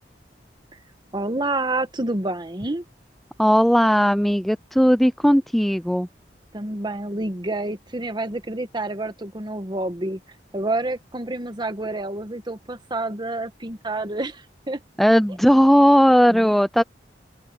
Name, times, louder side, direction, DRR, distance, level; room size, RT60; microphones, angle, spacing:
voice 1, 1.1-2.8 6.5-10.2 10.5-14.8 16.3-16.5 16.8-16.9, right 2 dB, 25° right, 1.4 m, -28 dB
voice 2, 3.4-6.1 15.0-16.8, equal, ahead, 0.3 m, -17 dB
open air
head